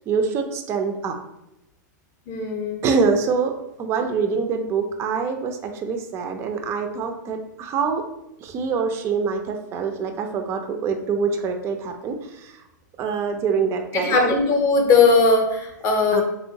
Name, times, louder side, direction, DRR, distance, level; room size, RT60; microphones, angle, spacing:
voice 1, 0.1-1.2 2.8-3.5 3.8-8.0 8.4-12.6 13.0-14.3 16.1-16.2, right 5 dB, 25° right, 5 dB, 0.3 m, -25 dB
voice 2, 2.3-2.8 13.9-16.2, left 4 dB, 30° left, 3 dB, 0.6 m, -19 dB
2.9 x 2.8 x 2.7 m, 0.86 s
hypercardioid pair, 130°, 10 cm